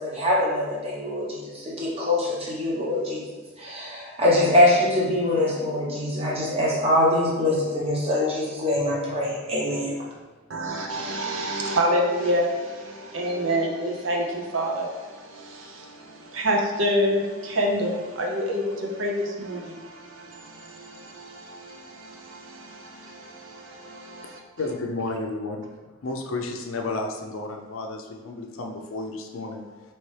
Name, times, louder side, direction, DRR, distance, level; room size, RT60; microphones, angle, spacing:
voice 1, 0.0-3.2 3.6-10.0, left 1 dB, 30° right, -5 dB, 0.9 m, -23 dB
voice 2, 10.5-24.4, equal, 65° right, 0 dB, 0.6 m, -28 dB
voice 3, 24.6-25.7 26.0-29.8, left 3 dB, 70° left, 3 dB, 0.5 m, -32 dB
4.2 x 3.0 x 3.2 m, 1.3 s
head